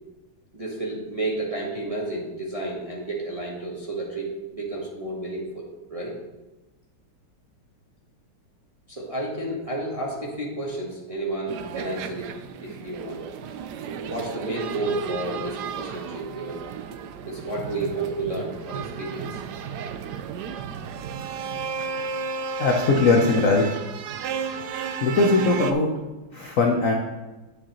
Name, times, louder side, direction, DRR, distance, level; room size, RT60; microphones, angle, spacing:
voice 1, 0.5-6.1 8.9-12.3 12.6-13.2 13.9-16.6 17.2-19.4, right 2 dB, 20° right, -4 dB, 1.0 m, -31 dB
sound 1, 11.5-25.7, right 6 dB, 80° right, 0.9 m, -34 dB
voice 2, 22.6-23.7 25.0-25.9 26.3-26.9, left 3 dB, 60° left, 1 dB, 0.8 m, -20 dB
9.9 x 7.5 x 3.0 m, 1.1 s
omnidirectional pair, 2.3 m